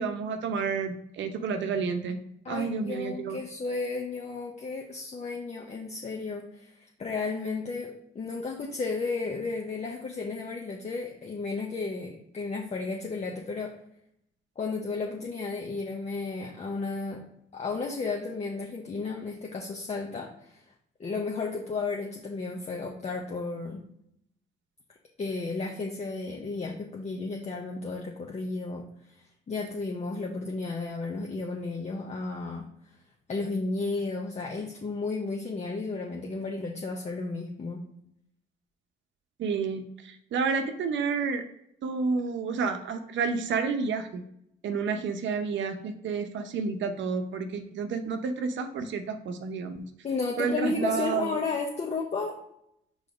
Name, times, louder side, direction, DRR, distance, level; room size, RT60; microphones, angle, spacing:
voice 1, 0.0-2.2 2.5-3.4 39.4-41.4 41.8-44.2 44.6-49.8 50.4-51.4, right 5 dB, 70° right, 7 dB, 0.8 m, -30 dB
voice 2, 2.4-13.7 14.6-17.2 17.5-20.6 21.0-23.8 25.2-29.2 29.5-32.6 33.3-37.8 50.0-52.4, left 3 dB, 35° left, 0 dB, 0.9 m, -33 dB
5.0 x 4.0 x 4.9 m, 0.74 s
cardioid pair, 90°, 20 cm